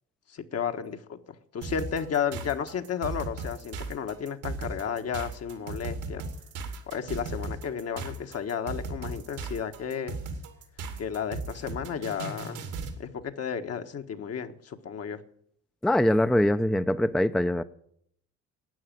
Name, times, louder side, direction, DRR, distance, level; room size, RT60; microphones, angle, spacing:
voice 1, 0.3-1.2 1.5-6.2 6.9-10.1 11.0-12.6 13.0-15.2, left 7 dB, 55° left, 1.4 m, -33 dB
sound 1, 1.6-13.0, right 3 dB, 85° right, 2.6 m, -37 dB
voice 2, 15.8-17.6, left 1 dB, ahead, 0.5 m, -23 dB
12.5 x 9.0 x 9.0 m
cardioid pair, 80°, 29 cm